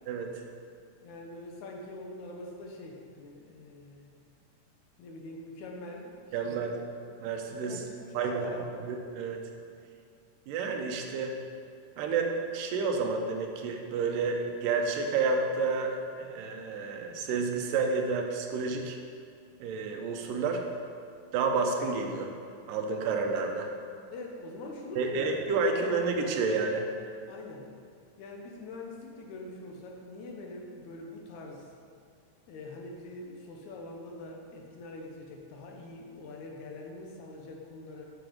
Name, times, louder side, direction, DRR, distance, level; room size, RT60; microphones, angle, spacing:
voice 1, 1.0-4.2 5.0-6.7 7.5-8.7 24.1-26.0 27.3-27.7 28.2-31.7 32.5-38.1, left 2 dB, 75° left, 1 dB, 2.0 m, -44 dB
voice 2, 6.3-6.7 7.2-7.8 8.2-8.5 8.8-9.4 10.5-11.4 12.0-19.0 19.6-20.6 21.3-22.3 22.7-23.7 25.0-26.9, right 4 dB, 85° right, 3 dB, 2.4 m, -30 dB
7.8 x 5.8 x 5.0 m, 2.3 s
omnidirectional pair, 3.7 m